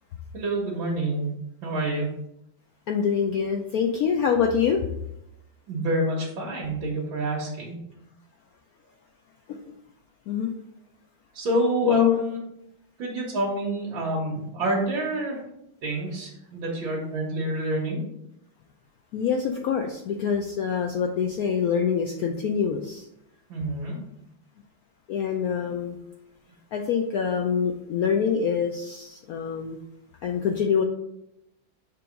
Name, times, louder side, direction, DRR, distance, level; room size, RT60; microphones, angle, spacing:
voice 1, 0.3-1.3 1.6-2.1 5.7-7.7 11.3-12.4 13.0-15.4 15.8-18.0 23.5-24.0, right 1 dB, 75° right, -4 dB, 2.0 m, -27 dB
voice 2, 2.9-4.8 9.5-9.6 10.3-10.5 11.8-12.2 19.1-23.0 25.1-26.0 26.7-29.8 30.2-30.9, left 7 dB, 85° left, 3 dB, 0.7 m, -25 dB
6.9 x 3.0 x 5.0 m, 0.83 s
omnidirectional pair, 2.2 m